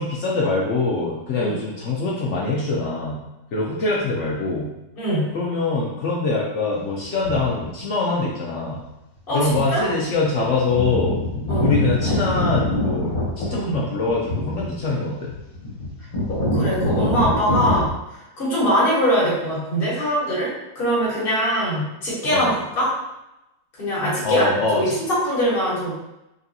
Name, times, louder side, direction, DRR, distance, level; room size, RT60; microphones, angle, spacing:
voice 1, 0.0-3.2 3.5-4.7 5.3-8.8 9.3-11.2 11.6-15.3 22.3-22.5 24.2-24.9, left 3 dB, 70° left, -3 dB, 0.6 m, -23 dB
voice 2, 5.0-5.3 9.3-9.9 11.5-11.7 13.5-13.7 16.3-22.9 23.8-25.9, equal, 35° left, -7 dB, 1.6 m, -22 dB
sound 1, 7.2-7.6 8.7-8.8 9.5-9.8 10.1-10.2 10.5-17.9, left 1 dB, 55° left, 1.7 m, -25 dB
4.0 x 3.3 x 2.7 m, 0.92 s
omnidirectional pair, 1.9 m